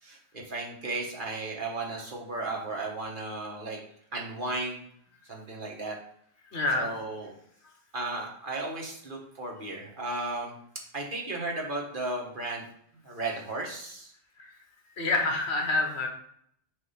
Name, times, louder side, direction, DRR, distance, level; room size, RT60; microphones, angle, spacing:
voice 1, 0.0-3.8 4.1-4.8 5.2-6.0 6.7-7.3 7.9-10.5 10.9-12.6 13.0-14.1, right 2 dB, 50° right, -1 dB, 1.3 m, -35 dB
voice 2, 6.5-6.9 14.4-14.6 15.0-16.1, left 2 dB, 70° left, 2 dB, 1.3 m, -27 dB
6.5 x 2.8 x 5.5 m, 0.67 s
omnidirectional pair, 1.2 m